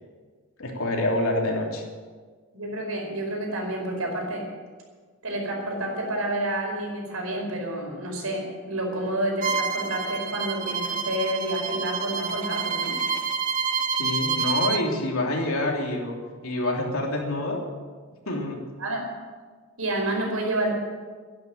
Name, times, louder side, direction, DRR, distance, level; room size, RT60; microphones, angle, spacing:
voice 1, 0.6-1.8 14.0-16.2 16.4-17.6 18.3-18.6, left 1 dB, 75° left, 0 dB, 3.2 m, -26 dB
voice 2, 2.5-4.5 5.2-12.9 18.8-19.0 19.8-20.7, right 1 dB, 80° right, 0 dB, 5.0 m, -29 dB
Bowed string instrument, 9.4-14.8, right 6 dB, 40° right, 0.9 m, -28 dB
12.0 x 11.0 x 8.9 m, 1.5 s
head